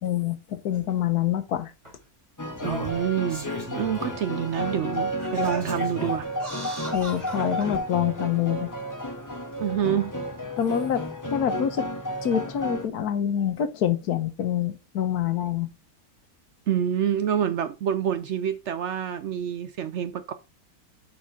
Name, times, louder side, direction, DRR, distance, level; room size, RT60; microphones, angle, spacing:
voice 1, 0.0-1.7 6.9-8.7 10.6-11.1 11.3-11.9 12.2-15.7, left 10 dB, 85° left, 1.5 m, -26 dB
Singing, 0.7-0.8 1.8-1.9 2.5-4.2 4.7-4.8 5.2-7.8 8.5-8.6, equal, 20° right, 2.4 m, -37 dB
sound 1, 2.4-12.9, equal, 15° left, 0.8 m, -32 dB
voice 2, 2.6-6.3 6.7-6.8 9.6-10.1 16.7-20.3, right 9 dB, 65° right, 0.7 m, -27 dB
8.3 x 4.3 x 4.1 m
omnidirectional pair, 1.6 m